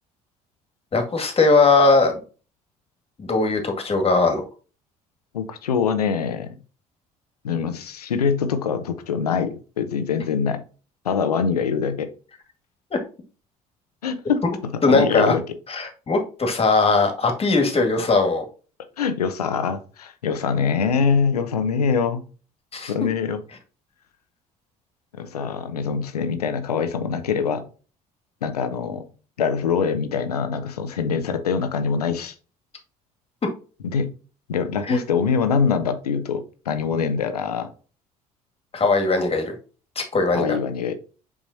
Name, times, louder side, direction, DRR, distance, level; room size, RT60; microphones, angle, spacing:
voice 1, 0.9-2.1 3.2-4.4 14.8-15.3 15.7-18.4 22.7-22.9 34.9-35.0 38.7-39.6 40.0-40.5, left 3 dB, 30° left, 4 dB, 2.0 m, -19 dB
voice 2, 5.3-6.5 7.4-10.6 11.0-12.1 14.0-15.4 19.0-22.2 22.9-23.4 25.1-27.7 28.4-29.1 29.4-32.3 33.8-34.1 34.5-37.7 40.3-41.0, left 6 dB, 85° left, 9 dB, 0.8 m, -24 dB
7.1 x 5.0 x 2.6 m, 0.36 s
figure-of-eight pair, 55°, 19 cm